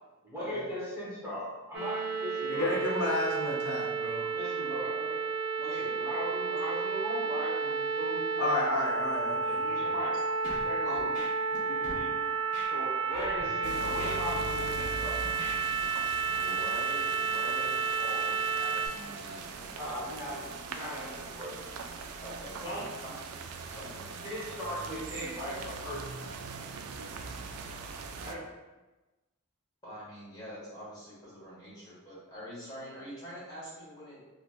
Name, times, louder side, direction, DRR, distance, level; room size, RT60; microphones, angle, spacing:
voice 1, 0.3-2.7 4.3-4.9 5.6-9.0 9.5-10.1 10.4-11.2 11.6-12.1 12.7-15.2 19.7-21.6 22.6-22.9 24.2-26.0 28.2-28.4, equal, 15° right, -8 dB, 0.9 m, -38 dB
sound 1, 1.7-18.9, right 5 dB, 55° right, 0.8 m, -31 dB
voice 2, 2.5-4.2 8.4-9.9, left 1 dB, 80° left, -2 dB, 0.6 m, -32 dB
voice 3, 4.8-5.2 5.6-6.7 10.8-11.1 15.9-20.2 22.2-23.1 23.7-24.2 29.8-34.2, equal, 20° left, -9 dB, 1.3 m, -45 dB
Scratching (performance technique), 10.4-10.6 11.0-11.6 11.8-12.0 12.5-12.7 13.2-13.4 13.9-14.9 15.2-15.6, left 1 dB, 40° left, 0.9 m, -43 dB
sound 2, 13.6-28.3, right 4 dB, 80° right, 0.3 m, -41 dB
3.1 x 2.7 x 2.3 m, 1.1 s
head